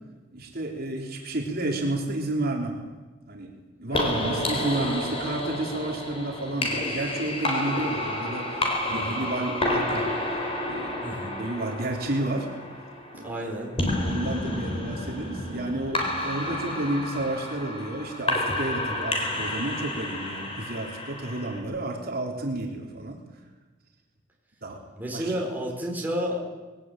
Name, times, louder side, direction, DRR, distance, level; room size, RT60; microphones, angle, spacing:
voice 1, 0.3-2.8 3.3-3.5 3.8-10.1 10.7-11.1 11.4-12.5 13.1-13.6 14.0-23.2 24.6-24.8 25.1-25.5, right 1 dB, 55° right, 1 dB, 3.3 m, -31 dB
sound 1, 3.9-21.6, left 1 dB, 30° left, 4.3 m, -30 dB
voice 2, 8.9-9.2 11.0-11.4 13.1-13.7 25.0-26.4, equal, 10° right, -1 dB, 4.6 m, -31 dB
21.0 x 17.5 x 8.9 m, 1.3 s
head